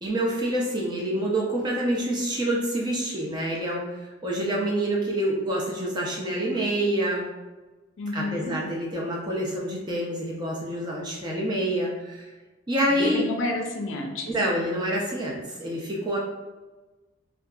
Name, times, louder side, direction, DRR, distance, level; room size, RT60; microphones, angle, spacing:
voice 1, 0.0-3.8 4.2-7.2 8.1-12.3 12.7-13.2 14.3-16.2, right 1 dB, 20° right, -3 dB, 0.4 m, -27 dB
voice 2, 8.0-8.6 12.9-14.3, left 2 dB, 65° left, 1 dB, 0.4 m, -30 dB
2.7 x 2.3 x 2.3 m, 1.2 s
head